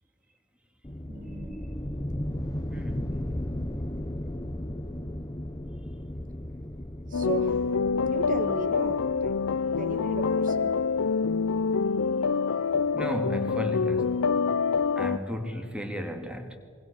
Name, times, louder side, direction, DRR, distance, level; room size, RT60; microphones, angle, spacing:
sound 1, 0.8-12.3, left 1 dB, 15° left, 0.9 m, -36 dB
voice 1, 1.1-1.7 7.1-7.7 8.0-9.4 9.8-10.8, right 3 dB, 40° right, 9 dB, 1.6 m, -36 dB
voice 2, 2.7-3.2 12.9-14.2 15.0-16.6, equal, 5° right, 5 dB, 2.3 m, -34 dB
sound 2, 7.1-15.2, left 5 dB, 70° left, 0.5 m, -26 dB
26.0 x 23.5 x 6.8 m, 2.1 s
head